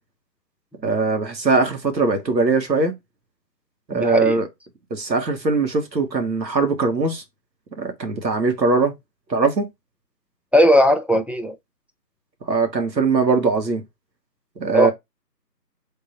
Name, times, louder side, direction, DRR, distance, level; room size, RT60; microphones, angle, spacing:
voice 1, 0.8-2.9 3.9-4.5 4.9-7.2 7.8-8.9 9.3-9.7 12.5-13.8 14.6-14.9, right 4 dB, 85° right, 1.3 m, -20 dB
voice 2, 3.9-4.4 10.5-11.5 14.7-14.9, equal, 5° right, 0.4 m, -17 dB
3.7 x 2.6 x 4.2 m
figure-of-eight pair, 175°, 50 cm